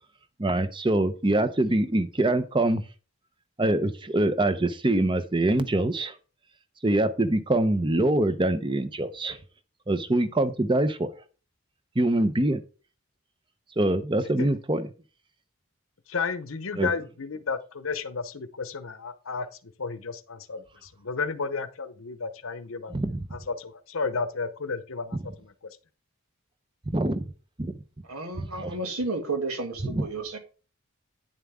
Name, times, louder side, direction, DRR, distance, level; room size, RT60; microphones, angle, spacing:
voice 1, 0.4-2.8 3.6-6.1 6.8-9.4 9.9-11.1 12.0-12.6 13.8-14.9 16.8-16.9 22.9-23.3 26.9-27.2 27.6-27.7 28.4-28.7 29.9-30.1, right 1 dB, 20° right, 0.7 m, -24 dB
voice 2, 16.1-19.5 19.8-22.9 23.3-25.5, left 4 dB, 70° left, 0.8 m, -32 dB
voice 3, 28.1-30.4, right 3 dB, 85° right, 2.1 m, -32 dB
9.5 x 7.4 x 3.6 m
head